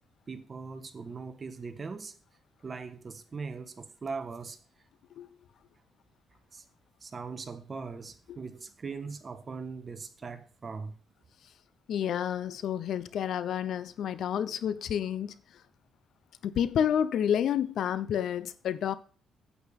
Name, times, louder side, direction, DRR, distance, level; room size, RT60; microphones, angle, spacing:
voice 1, 0.3-2.1 2.6-4.6 6.5-6.6 7.0-10.9, right 4 dB, 35° right, 1.4 m, -40 dB
voice 2, 11.9-15.3 16.4-19.0, left 9 dB, 70° left, 0.7 m, -29 dB
9.2 x 8.8 x 5.3 m
cardioid pair, 90°, 0 cm